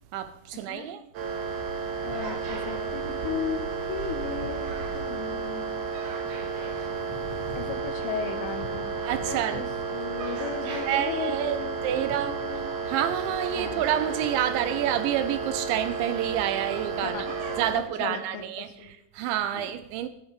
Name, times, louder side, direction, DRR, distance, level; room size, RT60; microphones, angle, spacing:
voice 1, 0.1-1.0 9.0-9.6 10.9-12.4 12.9-17.3 17.6-20.1, right 11 dB, 80° right, 2.9 m, -28 dB
sound 1, 1.1-17.7, right 4 dB, 60° right, 3.7 m, -32 dB
voice 2, 2.0-5.7 7.6-8.9 9.3-9.7 9.9-12.7 13.6-13.8 16.9-17.4 17.7-18.9 19.5-19.7, left 8 dB, 80° left, 3.8 m, -36 dB
14.5 x 13.5 x 5.2 m
omnidirectional pair, 5.7 m